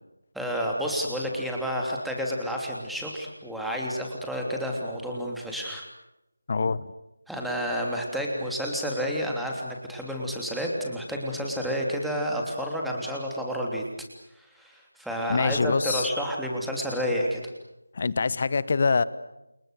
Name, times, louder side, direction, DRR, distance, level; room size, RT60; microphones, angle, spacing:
voice 1, 0.3-5.9 7.3-13.8 14.4-17.4, equal, ahead, -2 dB, 3.2 m, -30 dB
voice 2, 6.5-6.9 15.3-16.1 17.9-19.0, left 4 dB, 35° left, 18 dB, 1.1 m, -24 dB
29.5 x 29.5 x 6.8 m, 0.90 s
figure-of-eight pair, 165°, 0 cm